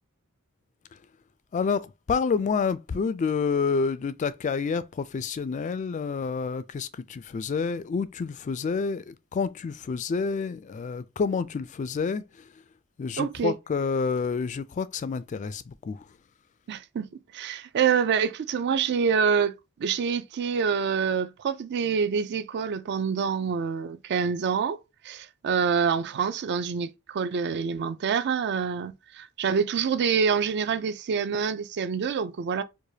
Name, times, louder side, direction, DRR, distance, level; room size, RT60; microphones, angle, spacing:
voice 1, 1.5-12.5 13.0-16.1, left 5 dB, 35° left, 0.3 m, -29 dB
voice 2, 13.2-13.5 16.7-24.8 25.0-32.6, right 6 dB, 50° right, 0.4 m, -26 dB
4.8 x 2.1 x 2.7 m
head